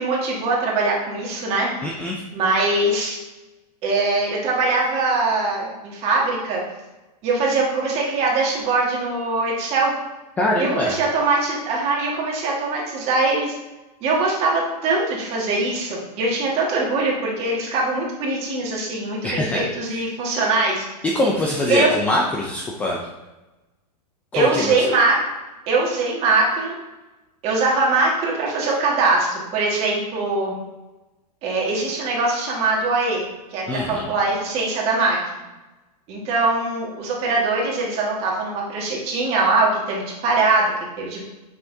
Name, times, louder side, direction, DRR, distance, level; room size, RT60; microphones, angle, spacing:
voice 1, 0.0-1.7 2.3-3.2 3.8-6.6 7.2-9.9 10.6-13.5 14.0-20.8 21.7-21.9 24.3-25.2 25.7-26.7 27.4-30.5 31.4-33.2 33.5-35.2 36.1-41.3, right 3 dB, 30° right, -3 dB, 1.7 m, -22 dB
voice 2, 1.8-2.2 10.4-10.9 19.2-19.6 19.9-20.0 21.0-23.1 24.3-24.7 33.7-34.1, left 1 dB, 5° left, -2 dB, 0.3 m, -23 dB
6.7 x 5.7 x 2.7 m, 1.1 s
supercardioid pair, 155°, 21 cm